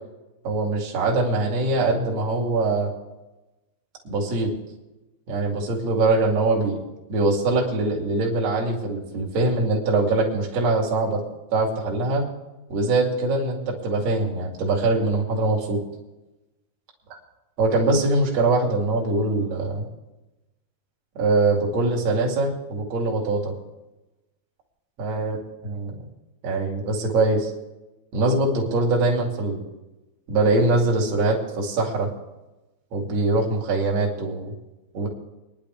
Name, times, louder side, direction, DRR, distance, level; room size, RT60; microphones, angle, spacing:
voice 1, 0.4-2.9 4.0-4.5 5.3-6.8 7.1-11.2 11.5-12.2 12.7-15.8 17.6-19.9 21.1-23.5 25.0-25.4 25.6-25.9 26.4-27.5 28.1-29.6 30.3-32.1 32.9-34.5 34.9-35.1, right 2 dB, 45° right, -2 dB, 3.0 m, -22 dB
23.5 x 10.5 x 3.5 m, 1.0 s
omnidirectional pair, 5.1 m